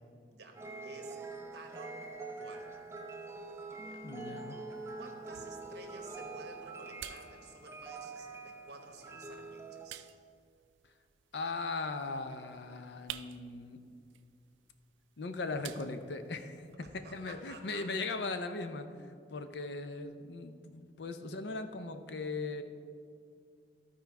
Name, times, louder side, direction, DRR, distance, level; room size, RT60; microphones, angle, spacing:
voice 1, 0.3-1.2 1.5-2.1 2.4-2.9 3.3-3.6 3.9-4.0 5.0-10.1 16.8-17.9, right 3 dB, 60° right, 3 dB, 1.1 m, -52 dB
sound 1, 0.6-9.9, right 3 dB, 15° right, 0.5 m, -45 dB
voice 2, 4.0-4.6 11.3-13.8 15.2-18.9 19.3-22.6, left 3 dB, 65° left, 9 dB, 0.5 m, -39 dB
sound 2, 4.7-16.7, right 12 dB, 80° right, 0.4 m, -53 dB
13.0 x 4.5 x 4.6 m, 2.4 s
head